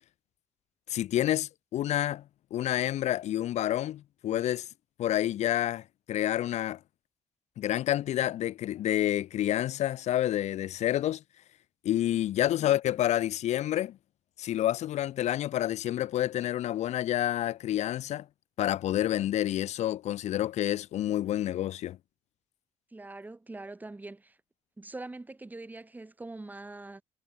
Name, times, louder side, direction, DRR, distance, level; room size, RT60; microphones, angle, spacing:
voice 1, 0.9-2.2 2.5-4.7 5.0-6.8 7.6-11.2 11.8-14.0 14.4-18.3 18.6-22.0, left 12 dB, 80° left, 0.5 m, -29 dB
voice 2, 22.9-24.4 24.8-27.0, right 2 dB, 15° right, 1.2 m, -43 dB
cardioid pair, 115°, 12 cm